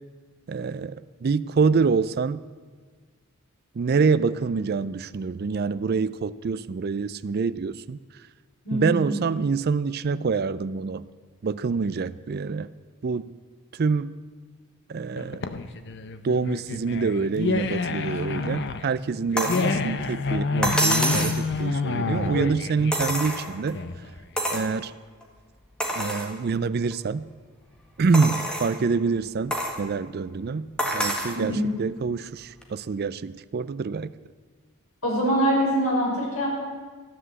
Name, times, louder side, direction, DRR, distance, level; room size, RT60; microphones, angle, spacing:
voice 1, 0.5-2.4 3.8-8.0 8.7-11.0 11.4-12.7 13.0-13.3 13.7-14.1 14.9-15.4 16.2-23.8 24.5-24.9 26.0-27.3 28.0-30.7 30.9-34.1, right 4 dB, 45° right, 15 dB, 0.4 m, -26 dB
voice 2, 8.7-9.1 31.3-31.8 35.0-36.5, equal, 80° left, -3 dB, 5.9 m, -24 dB
sound 1, 15.2-24.2, left 3 dB, 55° left, 0.8 m, -28 dB
sound 2, 19.4-19.7 20.6-21.4 22.9-23.7 24.4-24.7 25.2-25.3 25.8-26.3 26.9-27.0 28.1-28.7 29.5-29.8 30.8-31.4 32.6-32.7, equal, 5° left, 1.7 m, -26 dB
13.5 x 9.8 x 8.0 m, 1.5 s
head